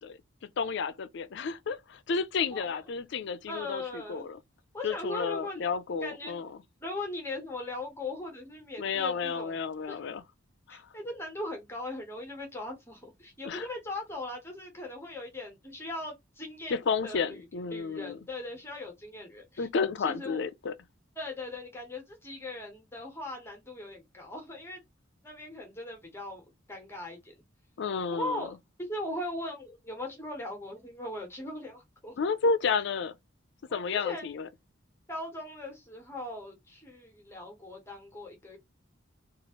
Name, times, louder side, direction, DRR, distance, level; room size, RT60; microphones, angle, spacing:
voice 1, 0.6-4.4 4.8-6.6 8.8-10.2 10.7-10.9 13.4-13.7 16.7-18.2 19.6-20.7 27.8-28.5 32.2-33.2 33.7-34.5, left 5 dB, 65° left, 0.4 m, -31 dB
voice 2, 3.5-4.2 4.7-5.7 6.0-6.4 6.8-9.5 9.9-10.0 10.7-16.8 17.0-17.4 17.7-19.7 20.0-20.4 21.2-24.8 25.2-26.4 26.7-27.4 28.1-32.2 33.7-34.4 35.1-38.6, left 2 dB, 15° left, 1.0 m, -39 dB
3.0 x 2.4 x 2.8 m
head